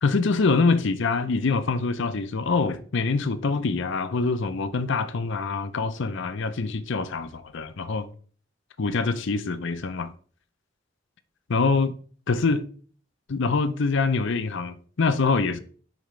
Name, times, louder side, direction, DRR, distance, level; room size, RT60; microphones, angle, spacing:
voice 1, 0.0-8.1 8.8-10.1 11.5-11.9 12.3-12.7 13.3-15.6, left 4 dB, 65° left, 0.6 m, -25 dB
10.5 x 4.5 x 3.2 m
head